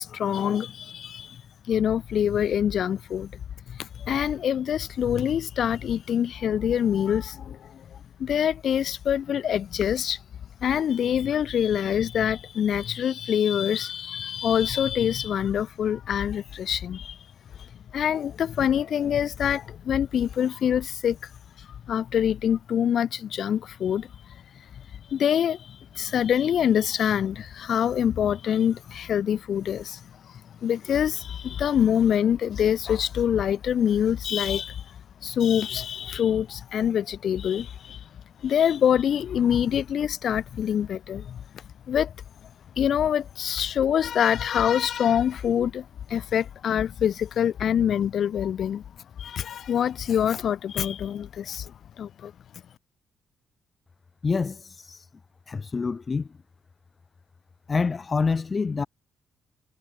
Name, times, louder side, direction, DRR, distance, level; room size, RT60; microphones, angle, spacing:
voice 1, 0.0-1.4 1.7-3.4 3.7-10.2 10.6-17.2 17.6-21.3 21.6-24.4 24.7-24.8 25.1-38.1 38.4-42.1 42.4-42.5 42.8-48.8 49.2-52.3, left 9 dB, 60° left, 5.1 m, -25 dB
voice 2, 54.2-55.1 55.5-56.3 57.7-58.9, left 4 dB, 35° left, 1.5 m, -26 dB
cardioid pair, 90°, 0 cm